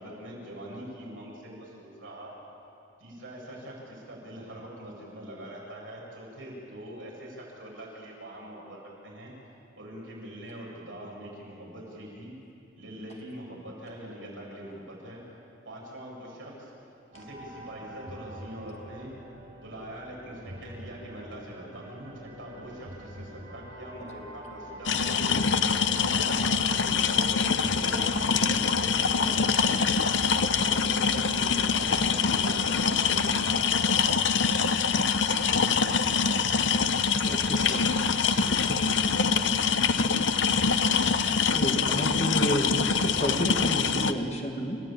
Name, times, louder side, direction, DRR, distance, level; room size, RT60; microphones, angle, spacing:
voice 1, 0.0-2.3 3.0-9.3 9.8-12.3 12.7-15.2 15.6-16.7 17.1-19.1 19.6-25.4 25.9-28.5 28.9-29.8 30.3-34.7 39.7-40.2, right 1 dB, 75° right, -4 dB, 7.9 m, -43 dB
sound 1, 17.1-31.7, right 1 dB, 50° right, 7.6 m, -44 dB
sound 2, 24.9-44.1, left 5 dB, 70° left, 0.8 m, -25 dB
voice 2, 35.5-39.3, equal, 10° right, 0 dB, 1.3 m, -45 dB
voice 3, 41.5-44.8, equal, 35° left, 2 dB, 2.2 m, -30 dB
30.0 x 15.0 x 9.0 m, 2.8 s
head